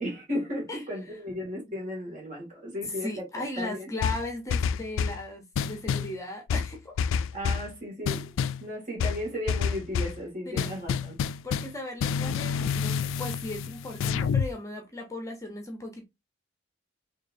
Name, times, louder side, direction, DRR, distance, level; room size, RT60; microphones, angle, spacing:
voice 1, 0.0-3.9 7.3-11.2, left 1 dB, 45° right, 2.3 m, -35 dB
voice 2, 3.0-7.0 10.5-10.7 11.4-16.0, left 2 dB, 15° left, 0.7 m, -37 dB
sound 1, 4.0-5.2 5.5-6.1 6.5-7.7 8.0-8.6 9.0-10.2 10.6-14.5, left 6 dB, 75° left, 0.3 m, -28 dB
4.4 x 3.2 x 2.6 m
head